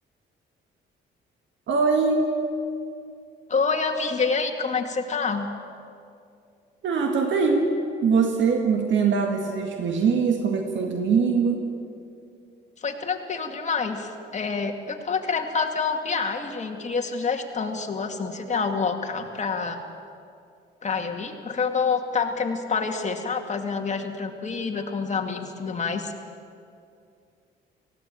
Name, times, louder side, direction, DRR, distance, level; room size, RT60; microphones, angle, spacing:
voice 1, 1.7-2.3 6.8-11.7, right 5 dB, 70° right, 3 dB, 1.9 m, -22 dB
voice 2, 3.5-5.5 12.8-19.8 20.8-26.1, left 5 dB, 35° left, 3 dB, 2.3 m, -27 dB
18.5 x 15.5 x 8.9 m, 2.4 s
cardioid pair, 90°, 20 cm